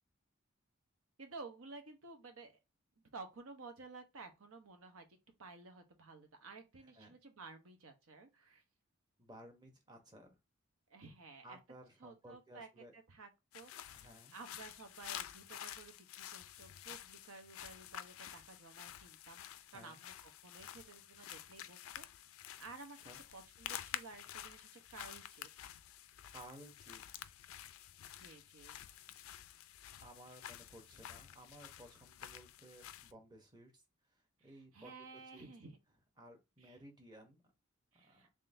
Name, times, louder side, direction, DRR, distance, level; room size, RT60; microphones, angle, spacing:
voice 1, 1.2-2.5 3.1-5.1 5.4-8.6 10.9-11.6 12.0-14.0 14.3-19.4 19.7-22.1 22.6-25.5 28.2-28.8 29.1-29.2 34.4-35.8 36.6-36.8 37.9-38.3, right 3 dB, 85° right, 0.9 m, -54 dB
voice 2, 9.2-10.4 11.4-12.9 13.9-14.3 19.7-20.0 23.0-23.2 26.3-27.2 30.0-33.7 34.4-34.9 35.3-35.5 36.2-37.4 37.9-38.3, right 1 dB, 20° right, 0.8 m, -57 dB
sound 1, 13.5-33.1, left 11 dB, 80° left, 0.3 m, -50 dB
3.7 x 3.4 x 2.6 m
head